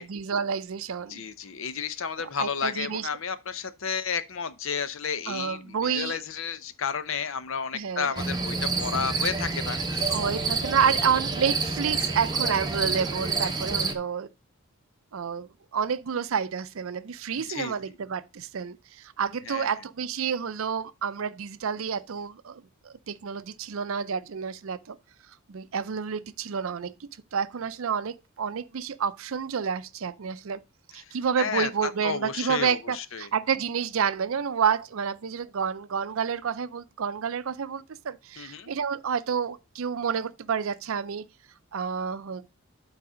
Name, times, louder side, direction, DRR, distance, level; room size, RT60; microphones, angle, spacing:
voice 1, 0.0-1.2 2.2-3.1 5.3-6.2 7.7-8.2 10.1-14.3 15.1-25.0 25.5-30.6 30.9-41.3 41.7-42.5, right 6 dB, 70° right, 0.5 m, -29 dB
voice 2, 1.1-10.2 17.3-17.7 19.4-19.7 31.4-33.3 38.4-38.7, left 6 dB, 65° left, 0.7 m, -32 dB
sound 1, 8.2-13.9, right 4 dB, 20° right, 0.8 m, -28 dB
8.6 x 4.0 x 4.9 m
head